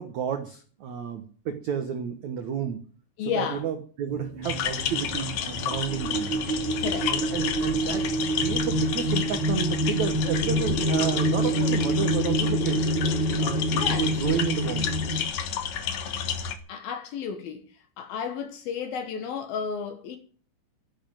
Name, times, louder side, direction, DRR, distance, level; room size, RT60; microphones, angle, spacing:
voice 1, 0.0-2.8 3.2-6.3 7.1-8.1 8.4-12.8 13.4-14.9, right 8 dB, 75° right, 1.7 m, -31 dB
voice 2, 3.2-3.6 6.8-7.1 13.7-14.4 16.7-17.6 18.0-20.2, left 7 dB, 65° left, 2.9 m, -32 dB
sound 1, 4.1-15.3, right 1 dB, 35° right, 2.5 m, -27 dB
sound 2, 4.4-16.6, left 8 dB, 85° left, 1.5 m, -31 dB
11.5 x 11.0 x 9.0 m
omnidirectional pair, 5.3 m